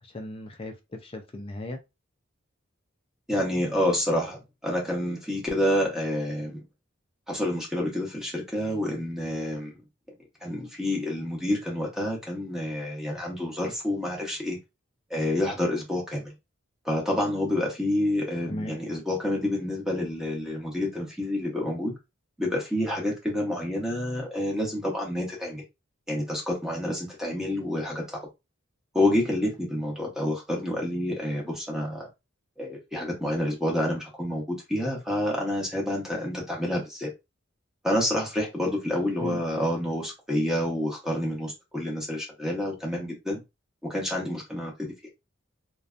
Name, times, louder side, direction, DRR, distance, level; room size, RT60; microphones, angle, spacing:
voice 1, 0.0-1.8 18.5-18.8 39.2-39.4, left 1 dB, 30° left, 0.4 m, -37 dB
voice 2, 3.3-6.6 7.3-9.8 10.4-14.6 15.1-16.3 16.8-21.9 22.4-25.6 26.1-28.3 28.9-32.1 32.6-37.1 37.8-43.4 43.8-44.9, left 1 dB, 5° right, 0.7 m, -28 dB
2.5 x 2.2 x 2.4 m
head